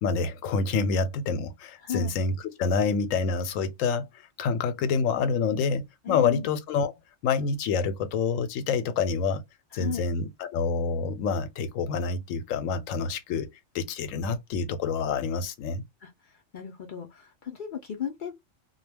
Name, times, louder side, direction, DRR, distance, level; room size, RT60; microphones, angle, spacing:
voice 1, 0.0-4.1 4.4-6.9 7.2-9.4 9.7-13.5 13.7-15.8, left 5 dB, 85° left, 1.0 m, -27 dB
voice 2, 1.8-2.1 6.0-6.5 9.7-10.1 16.0-18.3, left 8 dB, 60° left, 0.5 m, -35 dB
2.2 x 2.1 x 3.3 m
omnidirectional pair, 1.3 m